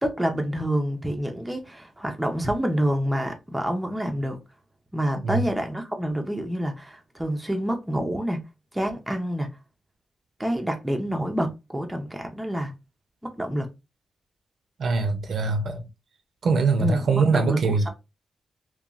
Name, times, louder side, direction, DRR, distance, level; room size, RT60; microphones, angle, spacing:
voice 1, 0.0-4.4 4.9-8.4 8.7-9.5 10.4-12.7 13.2-13.7 16.8-17.6, equal, 10° right, 0.5 m, -27 dB
voice 2, 14.8-15.8 16.4-17.9, right 4 dB, 65° right, 0.5 m, -23 dB
2.8 x 2.2 x 2.3 m
cardioid pair, 110°, 0 cm